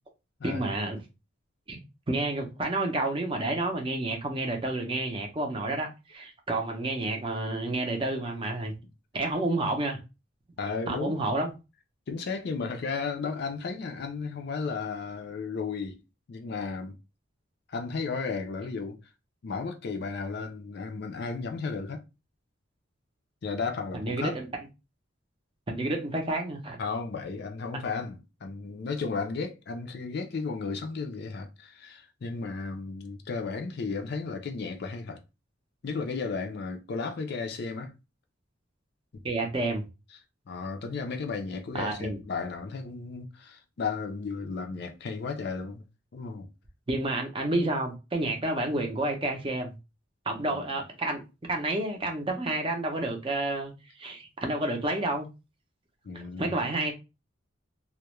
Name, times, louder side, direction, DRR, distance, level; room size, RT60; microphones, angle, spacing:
voice 1, 0.4-1.0 1.7-1.8 2.1-8.7 9.1-10.0 10.9-11.5 23.9-24.5 25.7-26.8 39.2-39.8 41.7-42.2 46.9-49.7 50.3-51.2 51.5-53.7 54.0-55.3 56.1-56.9, right 2 dB, 25° right, 0.5 m, -30 dB
voice 2, 10.6-11.2 12.1-16.0 16.3-17.0 17.7-19.0 19.4-22.0 23.4-24.4 26.8-35.2 35.8-37.9 40.5-45.8 46.1-46.5 50.5-50.6 56.0-56.6, left 4 dB, 55° left, 0.4 m, -34 dB
2.3 x 2.1 x 2.9 m
head